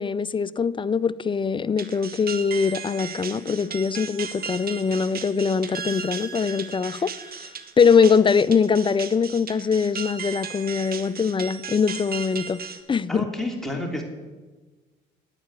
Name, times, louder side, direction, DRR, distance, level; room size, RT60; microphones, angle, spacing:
voice 1, 0.0-7.1 7.4-7.5 7.8-12.6 12.9-13.3, left 6 dB, 25° left, 0.5 m, -22 dB
sound 1, 1.8-12.8, right 6 dB, 50° right, 1.3 m, -36 dB
voice 2, 13.1-14.0, left 1 dB, ahead, 3.0 m, -29 dB
11.5 x 8.6 x 9.6 m
cardioid pair, 90°, 20 cm